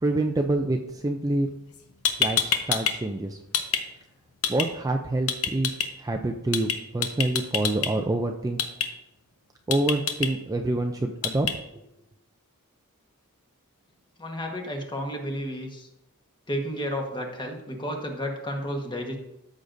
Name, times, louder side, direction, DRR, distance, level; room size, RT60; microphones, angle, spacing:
voice 1, 0.0-1.5 2.2-3.4 4.5-5.7 6.0-8.6 9.7-11.5, right 2 dB, 15° right, 4 dB, 0.4 m, -26 dB
sound 1, 1.7-1.8 2.0-2.9 3.2-3.8 4.4-4.7 5.3-5.9 6.5-6.7 7.0-7.9 8.6-8.9 9.7-10.3 11.2-11.5, left 8 dB, 70° left, 0.9 m, -25 dB
voice 2, 14.2-15.9 16.5-19.2, equal, 20° left, 2 dB, 1.2 m, -32 dB
13.5 x 6.3 x 2.6 m, 0.88 s
head